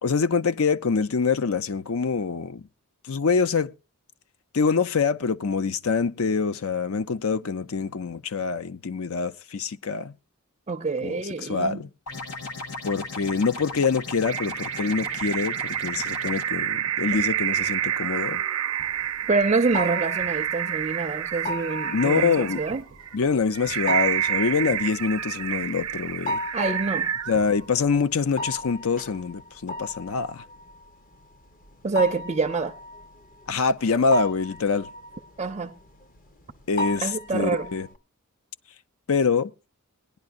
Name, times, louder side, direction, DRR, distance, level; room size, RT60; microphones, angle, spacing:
voice 1, 0.0-2.6 3.1-3.7 4.5-10.1 11.0-11.9 12.8-18.4 21.9-22.6 23.1-26.4 27.3-30.4 33.5-34.9 36.7-37.9 39.1-39.5, left 5 dB, 65° left, 0.5 m, -25 dB
voice 2, 10.7-11.8 19.3-22.8 26.5-27.1 31.8-32.8 35.4-35.7 37.0-37.7, right 4 dB, 30° right, 0.5 m, -26 dB
sound 1, 12.1-16.4, left 3 dB, 85° left, 1.4 m, -37 dB
sound 2, 14.3-27.8, right 10 dB, 80° right, 0.6 m, -29 dB
sound 3, 18.8-38.0, left 1 dB, 40° left, 0.9 m, -36 dB
19.5 x 10.5 x 2.5 m
head